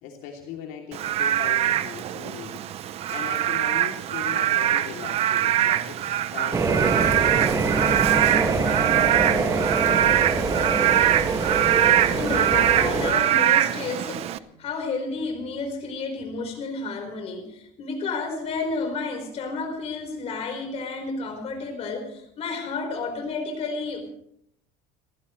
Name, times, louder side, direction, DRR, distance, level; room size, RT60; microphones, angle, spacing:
voice 1, 0.0-2.6 3.1-6.7 7.1-10.5, left 7 dB, 70° left, 0 dB, 3.0 m, -39 dB
Frog / Rain, 0.9-14.4, right 12 dB, 35° right, 0.7 m, -23 dB
sound 1, 6.5-13.1, right 4 dB, 20° right, 2.0 m, -24 dB
voice 2, 12.1-14.3 14.6-24.1, left 4 dB, 40° left, 3 dB, 4.5 m, -31 dB
30.0 x 14.5 x 3.2 m, 0.72 s
cardioid pair, 165°, 17 cm